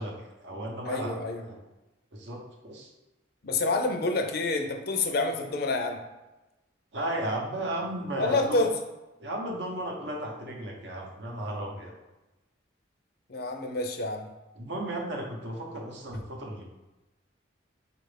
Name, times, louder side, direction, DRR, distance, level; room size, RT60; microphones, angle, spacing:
voice 1, 0.0-1.2 1.4-1.6 2.1-2.9 6.9-8.7 9.2-11.9 14.6-16.7, right 1 dB, 65° right, 0 dB, 0.7 m, -34 dB
voice 2, 0.8-1.4 3.4-6.0 8.2-8.7 13.3-14.3, left 2 dB, 50° left, 5 dB, 0.4 m, -28 dB
4.8 x 2.5 x 3.3 m, 1.0 s
head